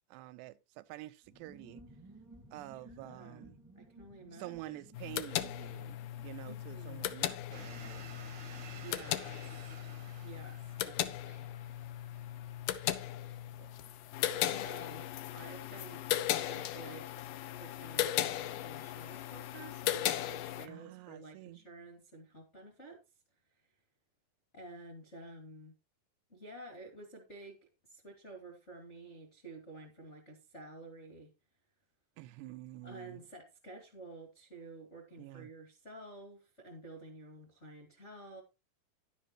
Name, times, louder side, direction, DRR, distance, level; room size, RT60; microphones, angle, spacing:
voice 1, 0.0-1.8 2.5-3.6 4.3-8.1 13.6-13.7 20.7-21.6 32.2-33.2 35.2-35.5, right 16 dB, 90° right, 2.9 m, -48 dB
sound 1, 1.2-17.5 17.8-17.9 18.1-18.5, right 2 dB, 10° right, 0.9 m, -61 dB
voice 2, 2.7-4.8 6.4-7.1 8.8-9.8 10.2-11.5 14.3-17.2 17.6-23.0 24.5-25.7 26.3-27.6 27.9-31.3 32.8-38.4, right 2 dB, 30° left, 1.3 m, -51 dB
sound 2, 4.9-20.7, left 13 dB, 80° left, 1.9 m, -37 dB
sound 3, 7.5-14.0, right 5 dB, 60° right, 1.1 m, -54 dB
11.0 x 10.5 x 3.0 m
omnidirectional pair, 4.8 m